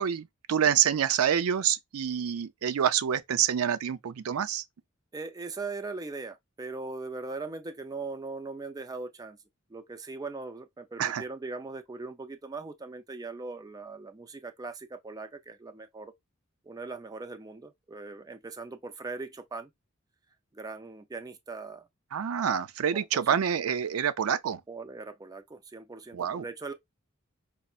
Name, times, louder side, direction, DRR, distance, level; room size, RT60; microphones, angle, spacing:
voice 1, 0.0-4.6 11.0-11.2 22.1-24.6 26.1-26.4, right 8 dB, 90° right, 0.4 m, -27 dB
voice 2, 5.1-9.4 9.7-16.1 16.6-19.7 20.5-21.9 22.9-23.2 24.7-26.7, right 3 dB, 15° right, 0.4 m, -40 dB
5.3 x 2.0 x 2.4 m
head